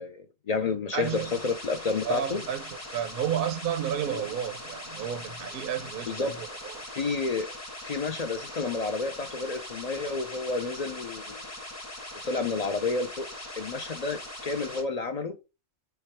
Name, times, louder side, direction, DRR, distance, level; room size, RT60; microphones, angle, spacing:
voice 1, 0.0-2.4 4.1-4.2 6.1-6.3 6.9-7.5 7.8-11.5 12.3-13.3 13.6-15.3, left 4 dB, 55° left, 0.4 m, -30 dB
voice 2, 0.9-1.4 2.0-6.8, right 9 dB, 60° right, 0.7 m, -32 dB
sound 1, 1.0-14.8, left 1 dB, 15° left, 0.8 m, -41 dB
4.6 x 2.2 x 4.4 m
omnidirectional pair, 1.2 m